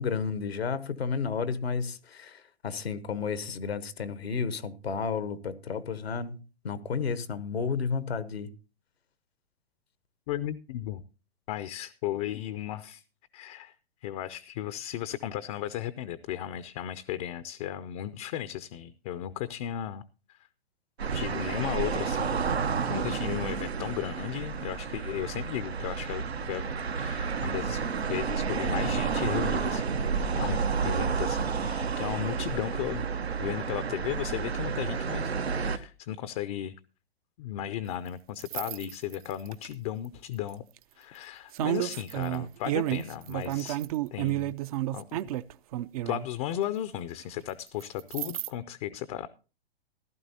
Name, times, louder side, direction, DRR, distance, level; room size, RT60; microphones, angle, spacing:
voice 1, 0.0-6.4 6.6-8.5, left 5 dB, 80° left, 1.1 m, -32 dB
voice 2, 10.3-11.0 11.5-13.0 13.3-13.7 14.0-20.0 21.1-22.4 22.9-26.6 26.9-29.8 30.4-33.1 33.4-36.7 37.4-40.6 41.0-43.8 44.1-44.5 44.9-45.0 46.1-49.3, left 11 dB, 35° left, 0.5 m, -35 dB
sound 1, 21.0-35.8, right 5 dB, 90° right, 1.0 m, -30 dB
sound 2, 38.4-39.7 40.5-40.8 41.5-46.3 47.8-48.5, right 14 dB, 35° right, 0.4 m, -31 dB
15.0 x 12.0 x 2.7 m
hypercardioid pair, 120°, 31 cm